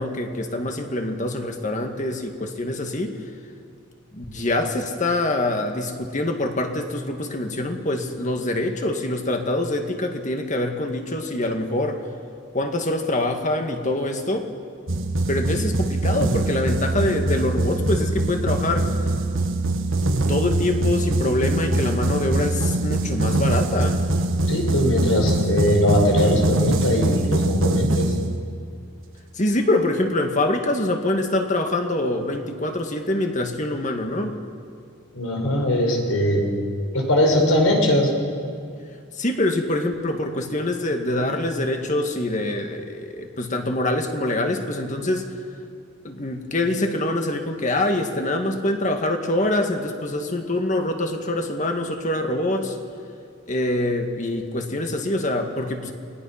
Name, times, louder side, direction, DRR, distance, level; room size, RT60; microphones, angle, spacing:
voice 1, 0.0-3.2 4.1-12.0 12.5-14.5 15.3-18.9 20.3-24.1 29.3-34.4 39.2-45.3 46.0-52.8 53.5-55.9, left 1 dB, 35° left, 4 dB, 1.9 m, -25 dB
sound 1, 14.9-28.8, right 2 dB, 70° right, 1.5 m, -23 dB
voice 2, 24.5-28.1 35.1-36.5 36.9-38.1, left 1 dB, 85° left, 2 dB, 4.8 m, -20 dB
28.5 x 20.0 x 5.9 m, 2.3 s
head